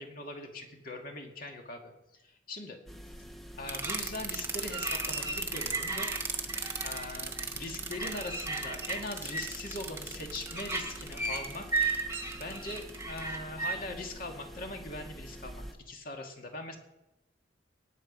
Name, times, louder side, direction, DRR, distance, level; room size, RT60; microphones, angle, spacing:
voice 1, 0.0-1.9 2.2-2.8 3.6-6.1 6.8-11.7 12.3-16.8, left 2 dB, 55° left, 2 dB, 2.2 m, -41 dB
sound 1, 2.9-15.7, equal, ahead, 1.1 m, -47 dB
sound 2, 3.7-13.8, right 3 dB, 15° right, 1.4 m, -35 dB
19.0 x 7.9 x 5.4 m, 0.95 s
head